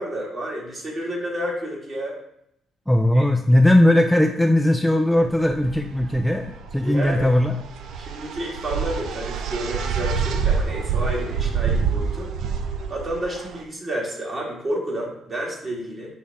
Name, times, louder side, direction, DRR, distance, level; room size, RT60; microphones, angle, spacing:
voice 1, 0.0-2.2 3.1-3.2 6.8-7.3 8.0-12.3 12.9-16.1, right 1 dB, 40° right, -3 dB, 2.2 m, -30 dB
voice 2, 2.9-7.5, left 1 dB, 5° left, 4 dB, 0.4 m, -18 dB
sound 1, 5.3-13.6, right 6 dB, 80° right, 0.5 m, -27 dB
6.4 x 3.5 x 4.2 m, 0.76 s
cardioid pair, 90°, 0 cm